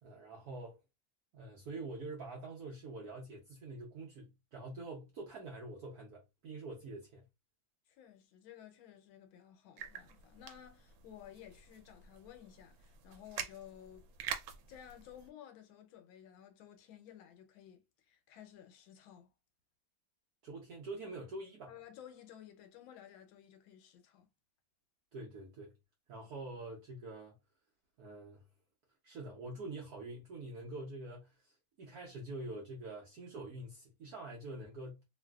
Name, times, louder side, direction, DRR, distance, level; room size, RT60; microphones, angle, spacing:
voice 1, 0.0-0.8 1.3-7.3 20.4-21.7 25.1-25.7 26.1-27.3 28.0-28.4 29.0-35.0, right 2 dB, 65° right, 1.0 m, -46 dB
voice 2, 7.9-14.1 14.7-19.3 21.6-24.3, left 10 dB, 85° left, 1.4 m, -55 dB
sound 1, 9.8-15.3, right 8 dB, 85° right, 1.4 m, -47 dB
3.1 x 2.6 x 2.2 m
omnidirectional pair, 2.1 m